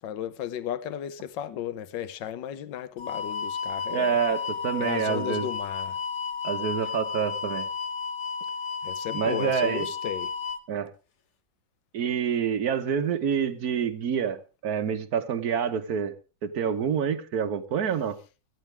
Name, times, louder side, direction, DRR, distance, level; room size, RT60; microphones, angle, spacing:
voice 1, 0.0-4.2 4.8-6.0 8.8-10.3, left 10 dB, 75° left, 1.5 m, -34 dB
sound 1, 3.0-10.6, left 5 dB, 45° left, 1.2 m, -32 dB
voice 2, 3.9-5.5 6.4-7.7 9.1-9.9 10.7-10.9 11.9-16.1 16.4-18.2, right 7 dB, 55° right, 1.5 m, -27 dB
17.5 x 13.5 x 3.4 m
omnidirectional pair, 2.0 m